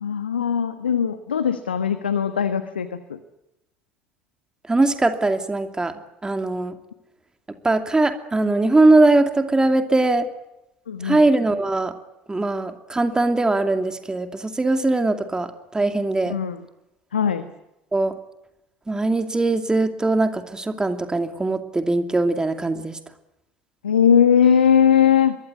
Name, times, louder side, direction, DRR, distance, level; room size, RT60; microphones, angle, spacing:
voice 1, 0.0-3.2 10.9-11.2 16.3-16.6 17.1-17.5 23.8-25.4, left 8 dB, 80° left, 11 dB, 1.3 m, -19 dB
voice 2, 4.7-5.9 6.2-6.7 7.6-10.3 11.0-11.9 12.3-16.4 17.9-18.1 18.9-23.0, right 2 dB, 15° right, 7 dB, 2.7 m, -20 dB
25.5 x 22.0 x 8.4 m, 0.93 s
figure-of-eight pair, 65°, 5 cm